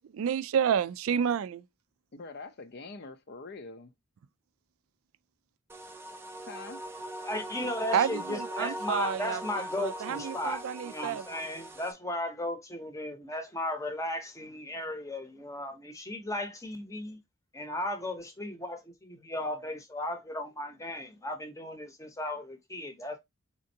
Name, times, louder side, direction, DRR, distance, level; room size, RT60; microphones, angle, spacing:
voice 1, 0.2-1.6 7.9-9.4 9.8-11.2, right 8 dB, 75° right, 0.3 m, -29 dB
voice 2, 2.1-3.9 6.5-6.9, left 3 dB, 50° left, 0.5 m, -44 dB
sound 1, 5.7-11.9, right 1 dB, 10° right, 0.5 m, -40 dB
voice 3, 7.2-17.2 17.5-23.2, left 1 dB, 15° left, 0.8 m, -36 dB
4.3 x 3.7 x 2.7 m
head